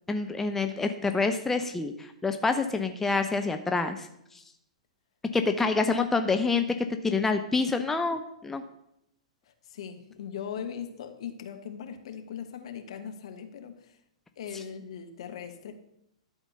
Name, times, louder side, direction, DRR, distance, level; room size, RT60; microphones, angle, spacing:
voice 1, 0.1-4.1 4.3-4.4 5.3-6.7 7.0-8.6 14.5-14.6, left 4 dB, 10° left, 6 dB, 0.6 m, -27 dB
voice 2, 9.7-13.9 14.4-15.7, left 8 dB, 55° left, 7 dB, 1.3 m, -39 dB
12.0 x 4.4 x 6.8 m, 0.80 s
figure-of-eight pair, 110°, 4 cm